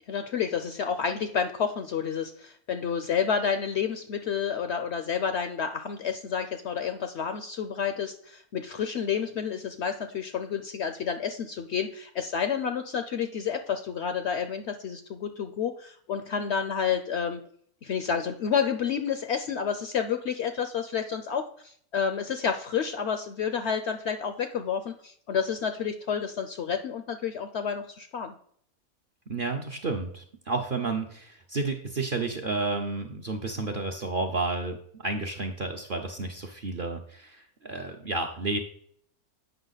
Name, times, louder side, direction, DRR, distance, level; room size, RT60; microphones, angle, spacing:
voice 1, 0.1-17.4 17.8-28.3, left 7 dB, 65° left, 8 dB, 0.7 m, -30 dB
voice 2, 29.3-38.6, right 3 dB, 50° right, 3 dB, 0.6 m, -31 dB
8.1 x 5.6 x 3.9 m, 0.64 s
omnidirectional pair, 1.6 m